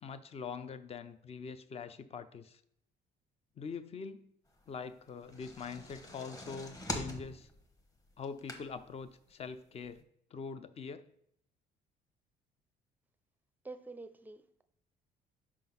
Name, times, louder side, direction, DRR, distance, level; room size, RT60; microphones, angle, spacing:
voice 1, 0.0-2.6 3.6-4.3 4.7-7.5 8.2-10.0 10.3-11.1, left 5 dB, 35° left, 12 dB, 0.5 m, -43 dB
sound 1, 5.1-9.0 9.5-9.6 9.9-10.0, left 1 dB, 20° left, 1.1 m, -43 dB
voice 2, 13.6-14.6, right 3 dB, 10° right, 10 dB, 0.5 m, -47 dB
5.3 x 3.7 x 5.8 m, 0.72 s
cardioid pair, 110°, 17 cm